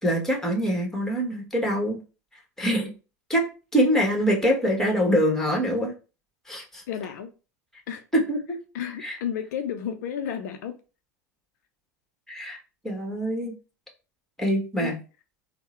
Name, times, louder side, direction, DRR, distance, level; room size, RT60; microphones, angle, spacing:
voice 1, 0.0-2.0 2.6-2.9 3.3-3.5 3.7-5.9 6.5-6.8 8.1-8.6 9.0-9.2 12.3-12.6 12.8-13.5 14.4-15.0, equal, 5° left, 1.4 m, -24 dB
voice 2, 6.9-7.3 7.9-8.0 8.7-10.8 14.8-14.9, left 8 dB, 70° left, 0.5 m, -32 dB
3.6 x 2.1 x 4.2 m
hypercardioid pair, 90°, 10 cm